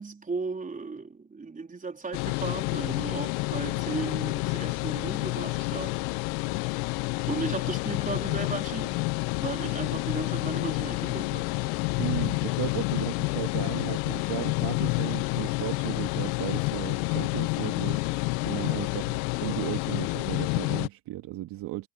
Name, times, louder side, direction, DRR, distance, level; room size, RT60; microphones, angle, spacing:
voice 1, 0.0-6.0 7.3-9.0 9.4-11.5, right 4 dB, 15° right, 4.3 m, -35 dB
sound 1, 2.1-20.9, left 27 dB, 55° left, 1.1 m, -29 dB
voice 2, 12.0-18.0 18.5-21.9, right 16 dB, 45° right, 2.3 m, -35 dB
hypercardioid pair, 100°, 49 cm